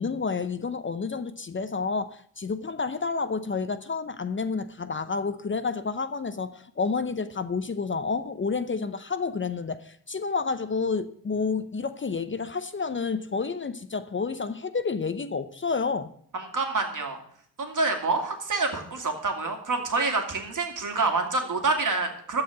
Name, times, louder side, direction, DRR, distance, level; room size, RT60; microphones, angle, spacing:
voice 1, 0.0-16.1, left 4 dB, 30° left, 0.7 m, -30 dB
voice 2, 16.3-17.2 17.6-22.4, right 3 dB, 55° right, 2.4 m, -27 dB
14.0 x 4.9 x 8.2 m
cardioid pair, 70°, 38 cm